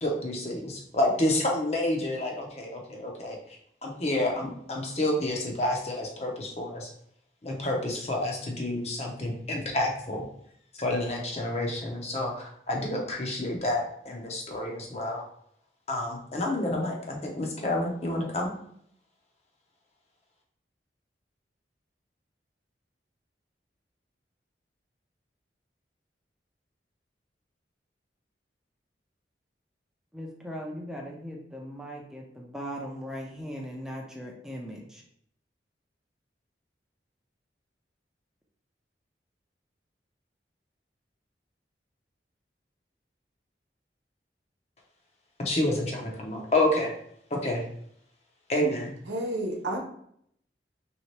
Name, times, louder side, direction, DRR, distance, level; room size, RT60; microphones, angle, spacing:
voice 1, 0.0-3.4 3.8-6.9 7.4-10.3 10.8-15.2 15.9-18.5 45.4-46.9 47.3-47.6 48.5-48.9, left 1 dB, 35° left, 0 dB, 0.7 m, -29 dB
voice 2, 30.1-35.0, equal, 5° right, -1 dB, 0.5 m, -39 dB
voice 3, 49.1-49.8, right 1 dB, 90° right, 0 dB, 0.9 m, -30 dB
3.4 x 2.8 x 3.2 m, 0.68 s
head